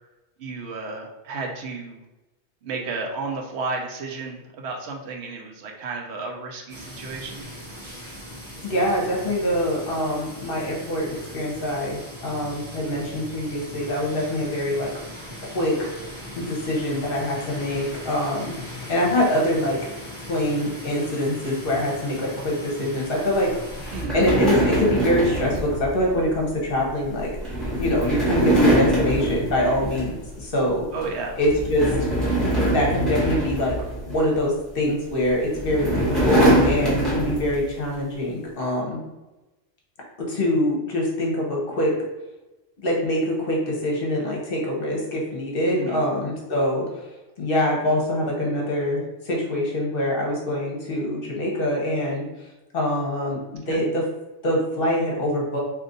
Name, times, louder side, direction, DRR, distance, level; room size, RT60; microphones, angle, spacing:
voice 1, 0.4-2.0 2.6-7.5 23.9-24.2 30.9-31.4 45.7-46.0 53.7-53.8, right 3 dB, 70° right, 1 dB, 0.9 m, -32 dB
sound 1, 6.7-24.0, equal, 50° right, 1.1 m, -39 dB
voice 2, 8.6-14.9 15.4-15.7 16.4-19.8 20.3-27.3 27.8-30.9 31.4-31.9 32.6-33.7 34.1-39.0 40.3-41.9 42.8-46.9 47.4-52.3 52.7-54.0 54.4-55.6, left 1 dB, 55° left, -2 dB, 1.0 m, -24 dB
sound 2, 23.8-30.4 30.7-31.0 31.4-34.4 35.2-37.7, right 1 dB, ahead, 0.9 m, -23 dB
2.7 x 2.5 x 3.8 m, 1.1 s
omnidirectional pair, 1.2 m